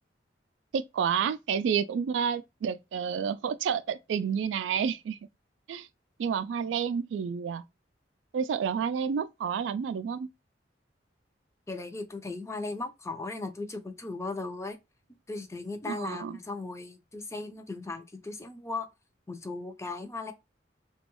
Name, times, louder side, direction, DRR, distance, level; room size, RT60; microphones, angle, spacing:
voice 1, 0.7-5.2 5.7-5.9 6.2-7.6 8.3-10.3 15.8-16.4, right 7 dB, 90° right, 0.3 m, -30 dB
voice 2, 11.7-14.8 15.3-18.9 19.3-20.3, left 3 dB, 15° left, 0.4 m, -37 dB
3.0 x 2.2 x 2.9 m
head